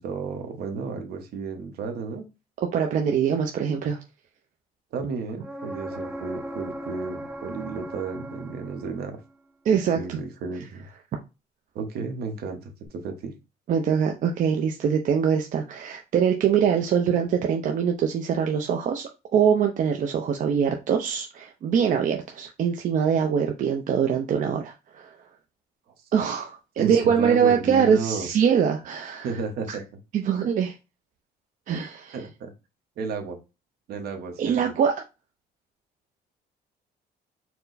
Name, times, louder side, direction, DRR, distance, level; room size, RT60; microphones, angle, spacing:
voice 1, 0.0-2.2 4.9-9.2 9.9-10.9 11.7-13.4 26.8-28.3 29.2-29.8 32.1-32.5 33.0-33.4 33.9-34.7, right 5 dB, 65° right, 5 dB, 1.1 m, -33 dB
voice 2, 2.7-4.0 9.6-10.2 13.7-25.1 26.1-29.3 29.7-29.8 30.1-30.7 31.7-32.2 34.4-34.9, right 7 dB, 50° right, 4 dB, 0.6 m, -23 dB
sound 1, 5.4-9.2 12.9-13.0, right 1 dB, 5° right, 0.7 m, -37 dB
4.4 x 2.1 x 4.0 m, 0.27 s
cardioid pair, 110°, 17 cm